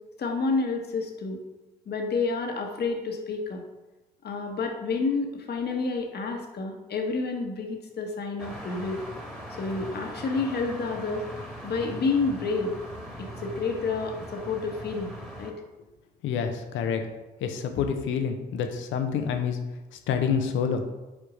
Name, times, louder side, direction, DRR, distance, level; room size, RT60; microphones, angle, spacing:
voice 1, 0.2-1.4 1.9-3.6 4.2-9.0 9.6-11.2 11.6-12.7 13.2-15.5, left 4 dB, 50° left, 2 dB, 1.3 m, -29 dB
sound 1, 8.4-15.5, equal, ahead, 1.9 m, -40 dB
voice 2, 16.2-17.1 17.4-19.6 20.1-20.8, left 7 dB, 70° left, 6 dB, 0.9 m, -27 dB
5.4 x 4.5 x 5.0 m, 1.1 s
hypercardioid pair, 50°, 21 cm